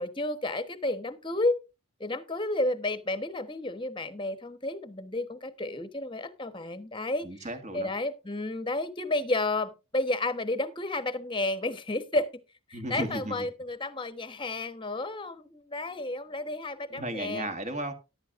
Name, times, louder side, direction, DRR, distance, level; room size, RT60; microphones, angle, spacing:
voice 1, 0.0-1.6 2.0-7.3 7.7-12.3 12.9-17.5, left 2 dB, 20° left, 1.1 m, -31 dB
voice 2, 7.2-7.9 12.7-13.5 16.9-17.9, right 1 dB, 30° right, 1.7 m, -35 dB
13.5 x 11.5 x 2.5 m
head